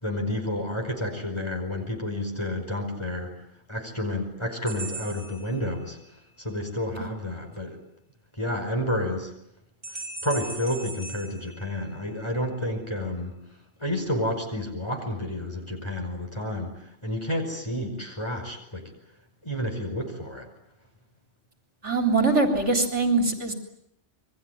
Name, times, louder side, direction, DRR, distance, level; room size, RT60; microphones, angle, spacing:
voice 1, 0.0-3.3 3.7-6.0 6.4-7.8 8.3-9.3 9.9-13.4 13.8-18.9 19.4-20.5, left 1 dB, 25° left, 3 dB, 5.1 m, -30 dB
sound 1, 4.7-6.2 9.8-12.3, right 2 dB, 40° right, 7.9 m, -39 dB
voice 2, 21.8-23.5, right 3 dB, 75° right, 4 dB, 3.8 m, -23 dB
27.5 x 22.5 x 9.4 m, 0.77 s
omnidirectional pair, 1.2 m